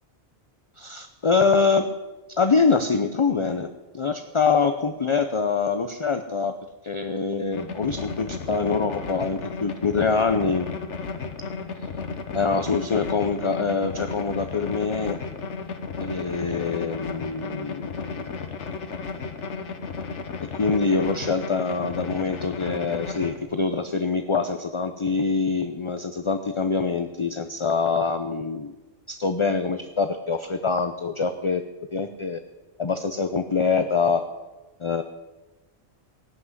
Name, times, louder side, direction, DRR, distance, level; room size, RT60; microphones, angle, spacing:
voice 1, 0.8-1.9 2.4-6.5 6.8-10.7 12.3-15.2 16.0-17.8 18.1-18.3 20.6-28.7 29.1-31.6 31.9-32.4 32.8-34.2 34.8-35.0, left 4 dB, 35° left, 8 dB, 0.6 m, -24 dB
sound 1, 7.5-23.4, left 4 dB, 85° left, 1.5 m, -34 dB
17.0 x 6.0 x 9.5 m, 1.1 s
omnidirectional pair, 1.2 m